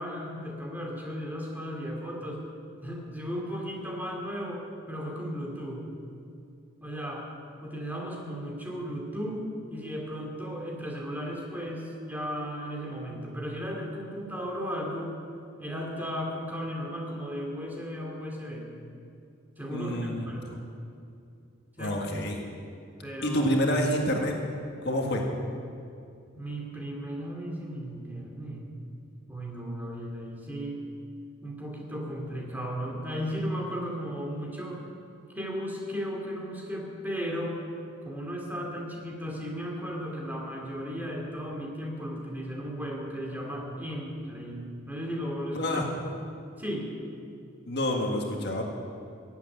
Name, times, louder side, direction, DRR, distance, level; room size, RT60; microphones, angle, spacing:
voice 1, 0.0-2.5 2.8-5.9 6.8-7.3 7.6-15.2 15.6-18.7 19.6-20.6 21.8-22.0 23.0-23.6 26.3-28.6 29.3-30.8 31.4-34.9 35.3-37.6 38.0-45.8 46.6-46.9, equal, 10° right, -1 dB, 2.5 m, -35 dB
voice 2, 19.7-20.5 21.8-22.4 23.2-24.4 24.8-25.2 45.5-45.9 47.7-48.6, left 1 dB, 55° left, 1 dB, 1.8 m, -28 dB
16.0 x 8.3 x 9.7 m, 2.5 s
head